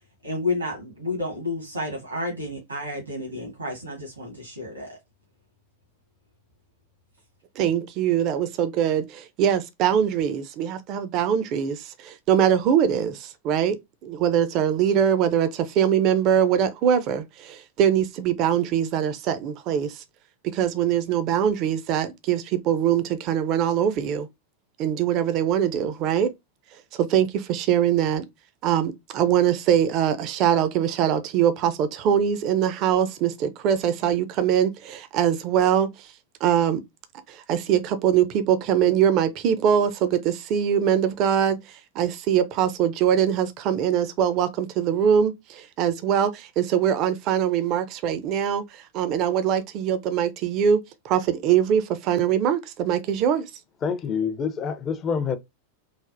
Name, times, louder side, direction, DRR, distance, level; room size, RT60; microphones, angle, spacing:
voice 1, 0.2-5.0, left 2 dB, 80° right, 1.1 m, -31 dB
voice 2, 7.6-13.8 14.0-20.0 20.5-24.3 24.8-26.3 27.0-28.2 28.6-35.9 36.4-36.8 37.3-41.6 42.0-53.4, right 9 dB, 40° right, 0.4 m, -22 dB
voice 3, 53.8-55.4, left 6 dB, 30° left, 0.4 m, -26 dB
3.3 x 2.0 x 2.5 m
figure-of-eight pair, 90°, 0 cm